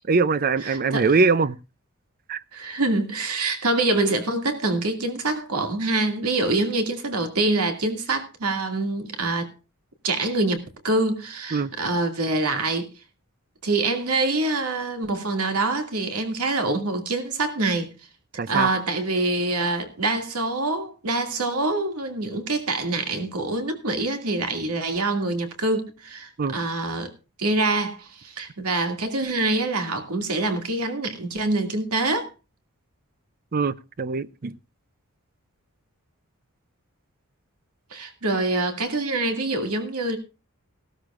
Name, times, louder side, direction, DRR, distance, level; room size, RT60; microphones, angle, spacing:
voice 1, 0.1-1.6 2.3-2.4 11.5-11.7 18.4-18.7 26.4-26.6 33.5-34.5, right 4 dB, 40° right, 0.5 m, -22 dB
voice 2, 0.6-1.1 2.5-9.5 10.0-12.9 13.6-17.9 18.5-27.1 27.4-32.3 37.9-40.2, right 2 dB, 85° right, 2.3 m, -25 dB
17.0 x 13.0 x 2.5 m
head